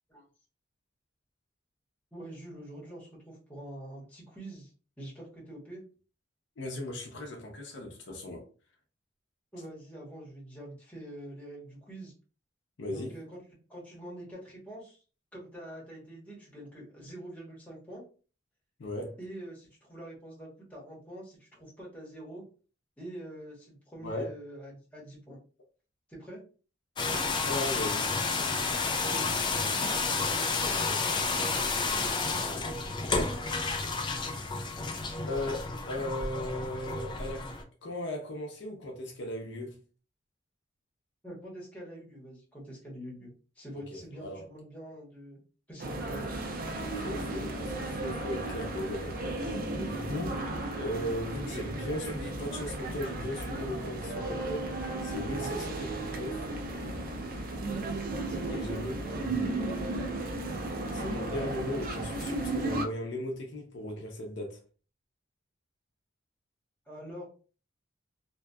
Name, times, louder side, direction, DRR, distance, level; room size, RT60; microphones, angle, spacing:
voice 1, 2.1-4.7 5.0-5.8 9.5-12.1 12.9-13.4 13.7-15.0 15.3-18.0 19.2-22.4 23.0-25.4 26.1-26.4 29.1-32.7 41.2-43.3 43.6-45.4 45.7-46.4 55.4-55.7 58.3-59.7 66.9-67.3, right 1 dB, 10° left, 1.1 m, -45 dB
voice 2, 6.6-8.5 12.8-13.1 18.8-19.2 24.0-24.3 27.5-28.1 35.3-37.5 37.8-39.8 43.7-44.4 46.8-49.4 49.8-50.5 50.8-54.8 55.0-56.5 58.5-59.5 60.9-64.6, left 1 dB, 70° left, 0.6 m, -37 dB
sound 1, 27.0-37.6, left 4 dB, 25° left, 0.3 m, -31 dB
sound 2, 45.8-62.9, right 2 dB, 50° right, 0.4 m, -34 dB
2.7 x 2.2 x 2.2 m
head